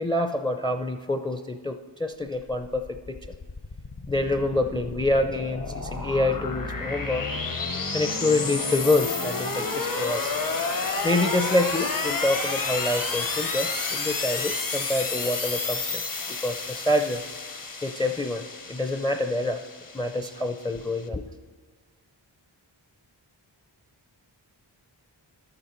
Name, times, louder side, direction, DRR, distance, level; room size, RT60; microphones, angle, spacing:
voice 1, 0.0-3.2 4.1-7.3 7.9-10.4 11.0-16.0 16.3-17.2 17.8-19.6 19.9-21.2, left 2 dB, 10° left, 7 dB, 0.4 m, -27 dB
sound 1, 2.6-21.0, left 3 dB, 45° left, 0.9 m, -31 dB
12.0 x 6.8 x 4.4 m, 1.5 s
cardioid pair, 50°, 47 cm